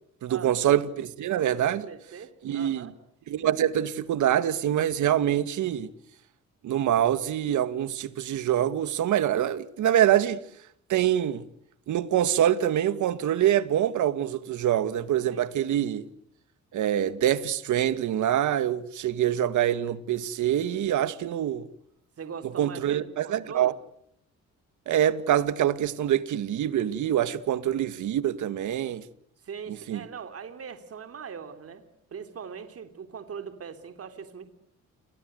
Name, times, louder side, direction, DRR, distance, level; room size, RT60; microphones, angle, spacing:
voice 1, 0.2-1.9 2.4-2.9 3.3-5.9 6.6-10.4 10.9-11.4 11.9-16.1 16.7-21.7 22.6-23.7 24.9-29.0 29.9-30.0, right 11 dB, 75° right, 2.1 m, -25 dB
voice 2, 1.8-2.9 15.3-15.6 22.2-23.8 29.4-31.8 32.1-34.5, right 7 dB, 50° right, 3.5 m, -41 dB
30.0 x 24.5 x 8.0 m
cardioid pair, 90°, 30 cm